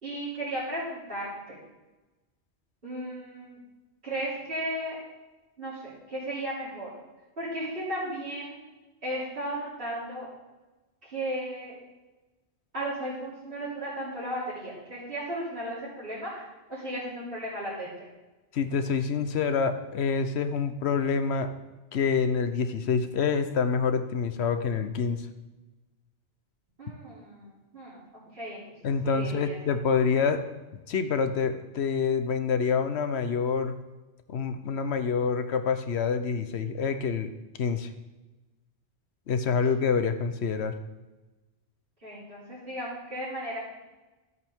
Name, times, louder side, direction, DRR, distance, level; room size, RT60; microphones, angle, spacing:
voice 1, 0.0-1.6 2.8-3.6 4.0-5.0 5.6-6.9 7.4-8.6 9.0-10.3 11.1-11.8 12.7-18.1 26.8-28.0 28.3-28.6 29.0-29.6 30.1-30.2 42.0-43.6, right 1 dB, 55° right, -11 dB, 3.6 m, -35 dB
voice 2, 18.5-21.5 21.9-25.3 28.8-30.4 30.9-33.8 34.3-37.3 37.6-37.9 39.3-40.7, left 5 dB, 70° left, 9 dB, 1.0 m, -27 dB
13.5 x 8.2 x 3.6 m, 1.1 s
omnidirectional pair, 1.1 m